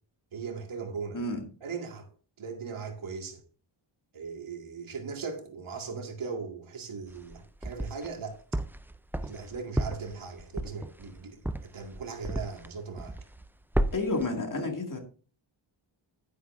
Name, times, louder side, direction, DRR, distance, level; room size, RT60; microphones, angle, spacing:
voice 1, 0.3-1.2 1.6-2.1 2.4-3.4 4.1-8.4 9.2-13.2, right 5 dB, 80° right, 2.3 m, -38 dB
voice 2, 1.1-1.4 13.9-15.0, left 2 dB, 40° left, 2.4 m, -30 dB
sound 1, 7.1-8.1 8.5-12.7 13.0-13.5 13.7-14.2, right 1 dB, 5° right, 0.4 m, -32 dB
11.0 x 9.7 x 2.7 m
wide cardioid pair, 100°, 48 cm